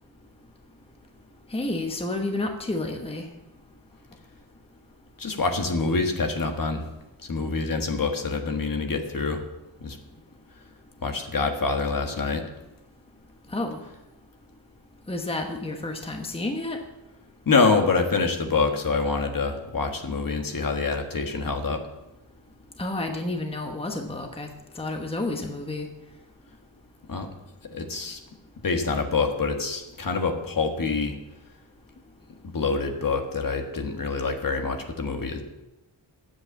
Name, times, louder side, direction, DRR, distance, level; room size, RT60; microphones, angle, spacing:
voice 1, 1.5-3.2 13.5-13.8 15.1-16.8 22.8-24.5 24.7-25.9, left 2 dB, 15° left, 4 dB, 1.1 m, -30 dB
voice 2, 5.2-6.9 7.2-9.4 9.8-10.0 11.0-12.4 17.4-21.8 27.1-27.3 27.7-28.2 28.6-31.2 32.5-35.4, left 4 dB, 45° left, 5 dB, 1.5 m, -26 dB
9.8 x 8.1 x 7.2 m, 0.97 s
wide cardioid pair, 110°, 45 cm